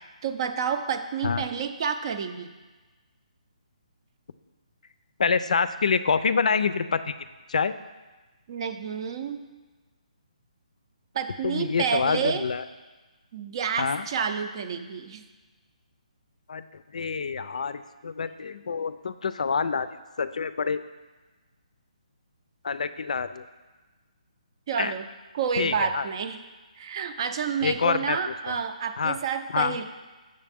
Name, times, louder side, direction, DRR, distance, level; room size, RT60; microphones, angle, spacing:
voice 1, 0.2-2.5 8.5-9.4 11.1-12.5 13.3-15.2 24.7-25.1 25.3-26.4 26.8-29.8, right 6 dB, 40° right, 9 dB, 0.5 m, -29 dB
voice 2, 5.2-7.1 7.5-7.7 11.4-12.6 13.8-14.1 16.5-16.6 16.9-19.9 20.2-20.8 22.6-23.5 24.8-24.9 25.6-26.1 27.6-28.2 28.5-28.6 29.0-29.2 29.5-29.8, left 5 dB, 70° left, 13 dB, 0.4 m, -26 dB
7.4 x 6.5 x 3.5 m, 1.2 s
hypercardioid pair, 160°, 4 cm